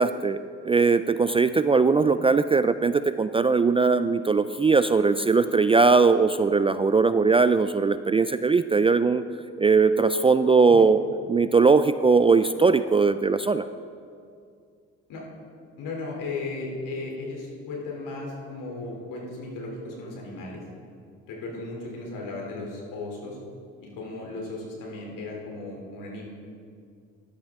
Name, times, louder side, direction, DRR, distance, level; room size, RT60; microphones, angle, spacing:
voice 1, 0.0-9.2 9.6-11.0 11.3-13.7, right 4 dB, 20° right, 11 dB, 0.3 m, -20 dB
voice 2, 15.8-20.6 21.3-23.4 23.8-26.2, left 3 dB, 70° left, -1 dB, 3.1 m, -36 dB
12.5 x 11.5 x 3.6 m, 2.3 s
supercardioid pair, 65°, 33 cm